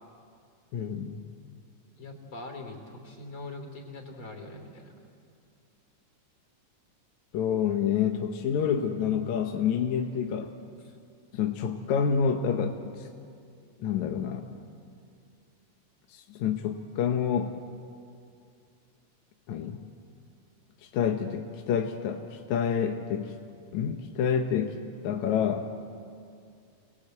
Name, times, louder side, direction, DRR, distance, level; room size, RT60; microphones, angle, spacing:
voice 1, 0.7-1.3 7.3-10.5 11.3-13.1 13.8-14.5 16.1-17.6 19.5-19.8 20.9-23.4 23.7-24.7 25.0-25.7, left 7 dB, 80° left, 4 dB, 2.4 m, -28 dB
voice 2, 2.0-4.9 10.8-11.0, left 2 dB, 45° left, 3 dB, 4.0 m, -42 dB
28.0 x 19.5 x 8.1 m, 2.4 s
omnidirectional pair, 3.3 m